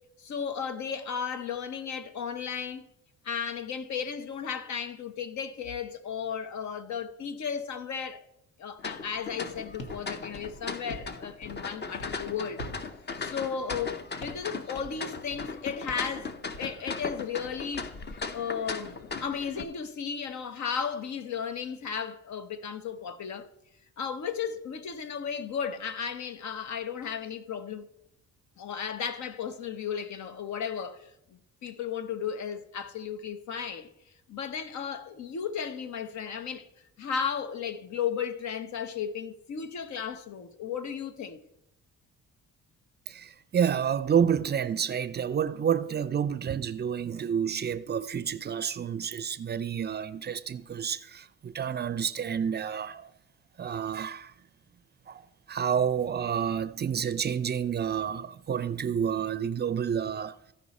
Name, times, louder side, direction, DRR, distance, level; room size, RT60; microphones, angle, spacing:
voice 1, 0.2-2.9 3.2-8.2 8.6-12.6 13.2-17.9 18.3-23.5 24.0-27.9 28.6-31.1 31.6-33.9 34.3-36.7 37.0-41.4, left 7 dB, 65° left, 0.9 m, -34 dB
sound 1, 8.8-19.6, left 4 dB, 35° left, 0.8 m, -38 dB
sound 2, 9.8-10.0 10.3-11.1 11.4-11.7 12.0-12.2 12.6-12.9 13.1-13.2 13.7-13.9 14.2-14.5 14.8-15.0 15.3-15.5 15.9-16.1 16.4-16.6 17.0-17.9, left 1 dB, 85° left, 1.5 m, -44 dB
voice 2, 43.1-53.1 53.6-54.3 55.1-55.2 55.5-60.4, right 8 dB, 35° right, 0.5 m, -29 dB
15.0 x 5.4 x 4.1 m
cardioid pair, 90°, 30 cm